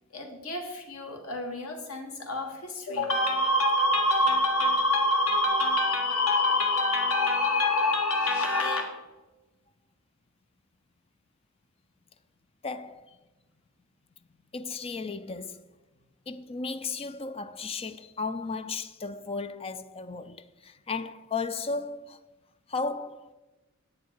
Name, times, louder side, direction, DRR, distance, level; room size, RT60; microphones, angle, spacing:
voice 1, 0.1-9.0, left 1 dB, 90° left, 1.7 m, -26 dB
voice 2, 12.6-13.2 14.5-15.7 16.3-22.2 22.7-23.3, left 4 dB, 25° left, 0.4 m, -35 dB
10.0 x 8.1 x 4.7 m
head